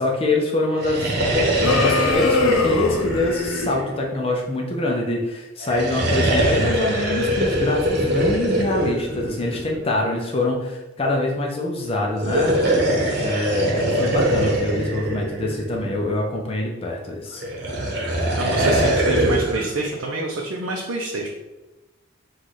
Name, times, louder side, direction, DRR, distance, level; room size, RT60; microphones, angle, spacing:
voice 1, 0.0-17.4, left 2 dB, 30° left, 0 dB, 0.5 m, -25 dB
sound 1, 0.7-4.3 5.6-9.9 12.1-16.1 17.4-19.7, right 1 dB, 50° right, 1.0 m, -22 dB
sound 2, 1.6-3.7, left 3 dB, 85° left, 0.6 m, -22 dB
voice 2, 18.4-21.3, right 2 dB, 80° right, -1 dB, 0.6 m, -27 dB
4.6 x 2.4 x 4.0 m, 1.1 s
head